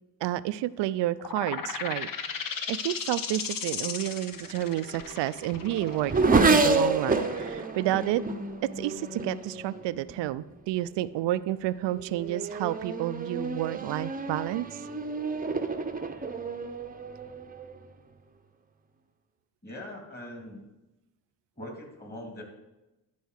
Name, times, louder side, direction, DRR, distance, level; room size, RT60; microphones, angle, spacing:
voice 1, 0.2-2.1 2.7-8.2 8.6-14.7, right 14 dB, 70° right, 17 dB, 0.5 m, -30 dB
sound 1, 1.2-8.5, left 6 dB, 50° left, 1.0 m, -36 dB
Race car auto racing / Accelerating revving vroom, 4.4-10.3 11.1-11.5 11.9-17.8, right 3 dB, 20° right, 0.8 m, -29 dB
voice 2, 19.6-20.6 21.6-22.4, left 1 dB, 20° left, 1 dB, 2.8 m, -41 dB
11.5 x 4.6 x 6.5 m, 1.0 s
cardioid pair, 80°, 44 cm